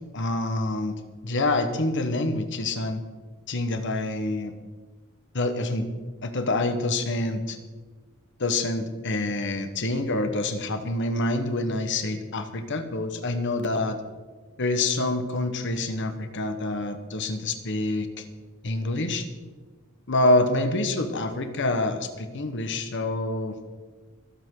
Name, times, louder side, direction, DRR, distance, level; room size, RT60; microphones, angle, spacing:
voice 1, 0.1-3.0 3.5-4.5 5.3-5.9 6.2-7.6 8.4-14.0 14.6-18.2 18.6-19.3 20.1-23.6, left 2 dB, 55° left, 8 dB, 1.2 m, -26 dB
24.5 x 8.2 x 3.8 m, 1.3 s
head